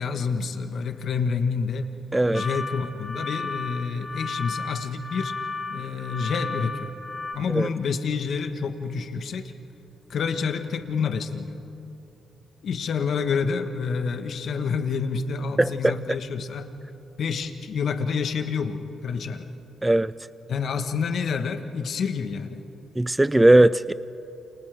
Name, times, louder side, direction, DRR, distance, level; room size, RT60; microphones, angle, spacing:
voice 1, 0.0-1.9 2.3-5.4 5.7-6.9 7.3-9.5 10.1-11.6 12.6-16.7 17.2-19.5 20.5-22.6, left 5 dB, 70° left, 7 dB, 1.3 m, -28 dB
voice 2, 2.1-2.4 7.5-7.7 15.6-15.9 19.8-20.1 23.0-23.9, right 1 dB, 15° right, 16 dB, 0.4 m, -18 dB
sound 1, 2.3-7.3, left 3 dB, 20° left, 1.7 m, -34 dB
29.0 x 28.5 x 3.5 m, 2.9 s
supercardioid pair, 60°, 0 cm